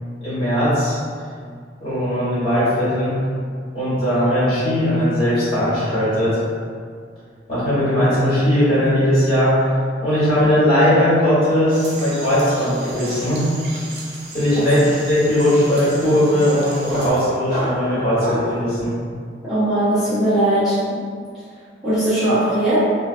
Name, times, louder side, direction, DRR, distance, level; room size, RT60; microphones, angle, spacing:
voice 1, 0.2-1.0 1.8-3.2 3.7-6.4 7.5-9.7 10.0-13.5 14.3-18.9, equal, 30° left, -13 dB, 1.4 m, -18 dB
sound 1, 11.7-17.1, right 2 dB, 70° right, 0.5 m, -36 dB
sound 2, 12.1-12.2 12.4-18.6, equal, 35° right, 1.0 m, -31 dB
voice 2, 19.5-21.0 21.8-22.8, right 1 dB, ahead, -18 dB, 0.8 m, -19 dB
2.5 x 2.3 x 2.5 m, 2.1 s
head